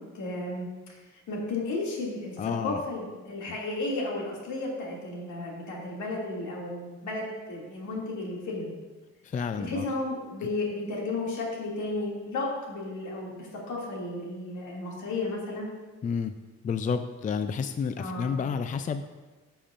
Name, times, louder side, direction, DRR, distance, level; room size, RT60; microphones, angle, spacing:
voice 1, 0.1-1.0 1.3-8.8 9.6-15.7 18.0-18.3, left 2 dB, 75° left, -3 dB, 2.5 m, -33 dB
voice 2, 2.4-2.8 9.2-9.9 16.0-16.3 16.6-19.0, left 6 dB, 25° left, 9 dB, 0.4 m, -30 dB
12.5 x 6.9 x 2.5 m, 1.3 s
cardioid pair, 90°, 30 cm